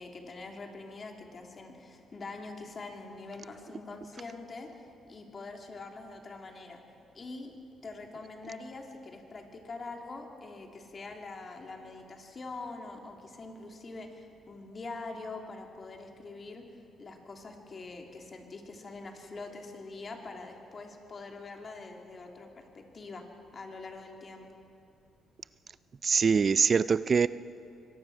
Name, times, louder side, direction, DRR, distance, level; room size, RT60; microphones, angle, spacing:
voice 1, 0.0-6.8 7.1-7.5 7.8-16.7 17.0-23.2 23.5-24.5, left 3 dB, 40° left, 3 dB, 2.7 m, -44 dB
voice 2, 26.0-27.3, right 5 dB, 40° right, 17 dB, 0.4 m, -23 dB
23.5 x 18.5 x 6.1 m, 2.7 s
cardioid pair, 90°, 0 cm